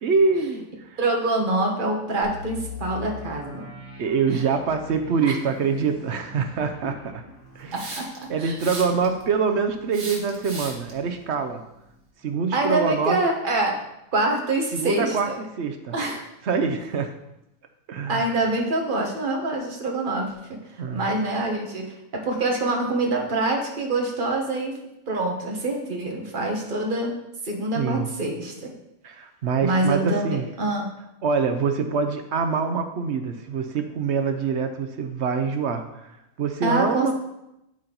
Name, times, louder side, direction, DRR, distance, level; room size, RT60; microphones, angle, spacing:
voice 1, 0.0-1.0 4.0-7.2 7.5-7.9 8.3-11.6 12.2-13.2 14.7-15.9 16.4-17.1 17.9-18.3 20.8-21.1 27.7-28.1 29.0-30.5 31.2-36.1 36.4-37.1, right 5 dB, 60° right, 7 dB, 0.9 m, -25 dB
voice 2, 1.0-3.6 7.7-8.1 8.4-8.6 12.5-13.8 14.1-15.4 15.9-16.2 18.1-20.6 20.9-24.8 25.1-27.1 27.4-28.7 29.6-30.9 36.6-37.1, right 2 dB, 40° right, 0 dB, 1.4 m, -25 dB
sound 1, 2.2-11.9 12.3-12.4 12.9-13.1, left 4 dB, 40° left, 2.5 m, -43 dB
Hiss, 7.7-8.2 8.6-9.2 9.9-10.9, right 2 dB, 90° right, 1.9 m, -35 dB
12.0 x 4.3 x 3.9 m, 0.86 s
omnidirectional pair, 1.4 m